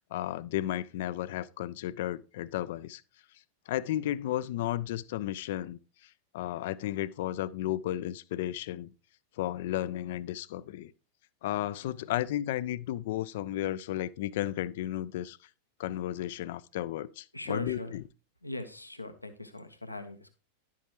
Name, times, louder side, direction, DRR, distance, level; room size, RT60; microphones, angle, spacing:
voice 1, 0.0-3.0 3.7-8.9 9.4-10.9 11.4-15.4 15.8-18.0, left 13 dB, 55° left, 0.5 m, -33 dB
voice 2, 17.3-17.9 18.4-20.4, left 1 dB, 85° left, 0.9 m, -39 dB
11.0 x 8.4 x 3.0 m
figure-of-eight pair, 90°, 0 cm